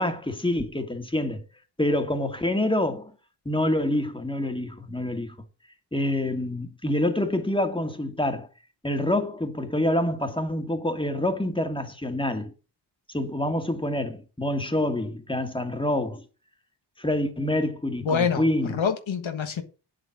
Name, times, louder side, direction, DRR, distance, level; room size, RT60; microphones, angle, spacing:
voice 1, 0.0-1.4 1.8-3.1 3.5-5.4 5.9-8.5 8.8-12.5 13.1-16.2 17.0-18.7, left 1 dB, 10° left, 2.2 m, -26 dB
voice 2, 18.0-19.6, left 6 dB, 75° left, 1.5 m, -26 dB
9.1 x 7.7 x 6.0 m
wide cardioid pair, 75°, 47 cm